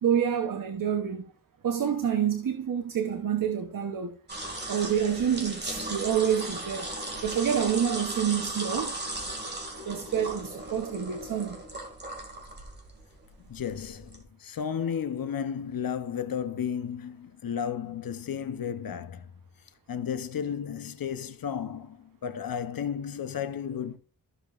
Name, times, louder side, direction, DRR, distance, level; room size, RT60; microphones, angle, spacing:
voice 1, 0.0-1.2 1.6-4.1 4.7-6.9 7.2-8.9 9.9-11.6, right 8 dB, 65° right, 0.9 m, -27 dB
sound 1, 4.3-14.2, right 2 dB, 30° right, 2.2 m, -37 dB
voice 2, 13.4-19.3 19.9-24.0, left 8 dB, 70° left, 0.8 m, -33 dB
14.0 x 6.8 x 2.4 m
wide cardioid pair, 145°, 36 cm